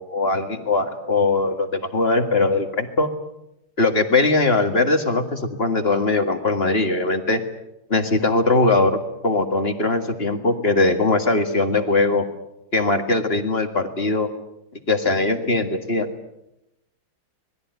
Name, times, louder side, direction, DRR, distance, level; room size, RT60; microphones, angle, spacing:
voice 1, 0.0-3.1 3.8-7.4 7.9-12.3 12.7-14.3 14.9-16.1, left 2 dB, 30° left, 7 dB, 2.0 m, -20 dB
26.0 x 20.0 x 9.3 m, 0.88 s
omnidirectional pair, 2.3 m